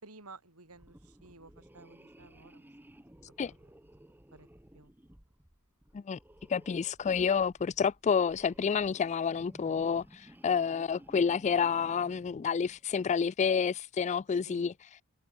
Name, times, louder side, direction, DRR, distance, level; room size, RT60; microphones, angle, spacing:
voice 1, 0.0-2.7 3.0-3.7 4.3-4.5 4.7-4.9 14.4-14.7, right 3 dB, 75° right, 5.0 m, -54 dB
sound 1, 0.7-13.2, right 1 dB, 10° right, 1.0 m, -57 dB
voice 2, 6.5-14.7, left 6 dB, 30° left, 0.3 m, -29 dB
head